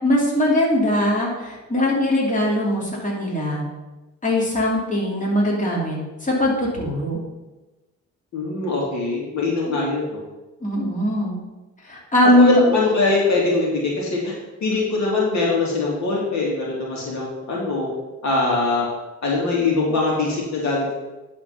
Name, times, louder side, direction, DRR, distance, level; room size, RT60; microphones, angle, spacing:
voice 1, 0.0-3.6 4.2-7.2 10.6-11.4 11.9-12.6, left 1 dB, 25° left, -4 dB, 2.9 m, -20 dB
voice 2, 8.3-10.2 12.4-14.3 14.6-17.9 18.2-18.9 19.2-20.9, left 3 dB, 65° left, -3 dB, 2.8 m, -22 dB
11.0 x 4.4 x 5.8 m, 1.1 s
cardioid pair, 90°, 30 cm